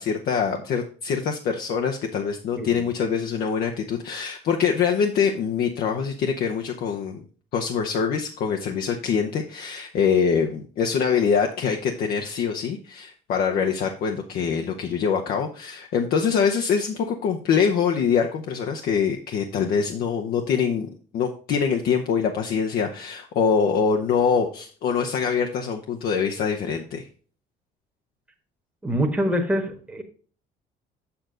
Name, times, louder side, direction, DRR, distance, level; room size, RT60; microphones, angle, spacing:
voice 1, 0.0-7.2 7.5-20.9 21.1-27.1, left 6 dB, 65° left, 3 dB, 0.9 m, -24 dB
voice 2, 2.6-2.9 28.8-30.0, equal, 10° right, 3 dB, 1.3 m, -25 dB
7.1 x 6.3 x 3.8 m, 0.41 s
cardioid pair, 110°, 17 cm